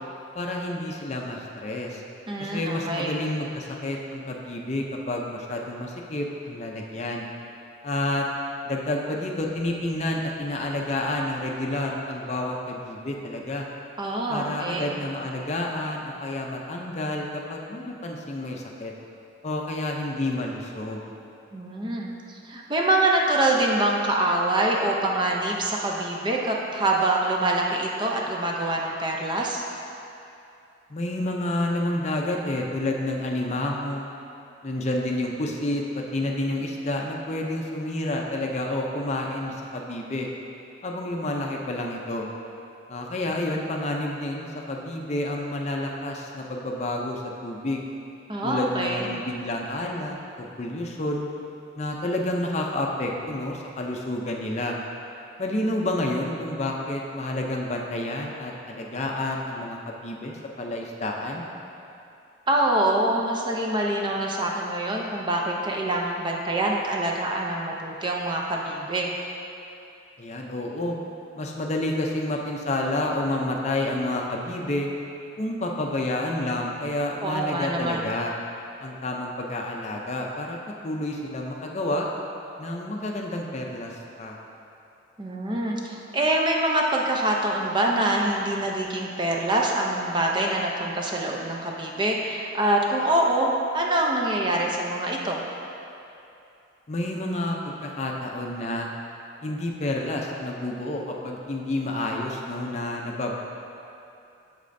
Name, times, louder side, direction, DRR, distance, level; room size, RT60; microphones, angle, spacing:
voice 1, 0.3-2.0 2.4-7.3 7.8-8.3 8.6-13.7 14.3-18.9 19.4-21.0 30.9-34.1 34.6-35.8 36.1-40.3 40.8-42.3 42.9-47.9 48.4-51.3 51.8-54.8 55.4-61.5 70.2-71.0 71.4-74.9 75.4-78.3 78.8-80.6 80.8-82.1 82.6-84.4 96.9-98.9 99.4-103.3, left 1 dB, 35° left, 0 dB, 0.5 m, -29 dB
voice 2, 2.3-3.2 14.0-14.9 21.5-29.6 48.3-49.1 62.5-69.1 77.2-78.2 85.2-93.5 93.7-95.4, right 1 dB, 25° right, -1 dB, 0.5 m, -25 dB
8.3 x 6.6 x 2.6 m, 2.7 s
head